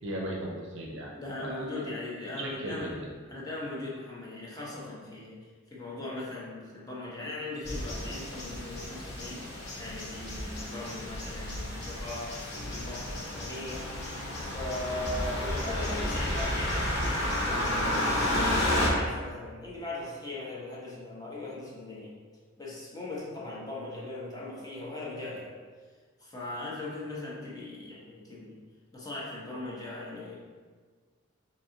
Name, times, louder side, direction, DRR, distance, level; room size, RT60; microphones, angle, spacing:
voice 1, 0.0-1.9 2.4-3.1, right 1 dB, 60° right, -2 dB, 0.5 m, -37 dB
voice 2, 1.2-3.0 3.3-9.4 9.8-13.9 14.4-22.1 22.6-25.5 26.2-28.6 28.9-30.4, left 2 dB, 20° left, -6 dB, 0.7 m, -39 dB
sound 1, 7.6-18.9, left 1 dB, 50° left, 0.8 m, -32 dB
4.6 x 2.8 x 2.7 m, 1.5 s
head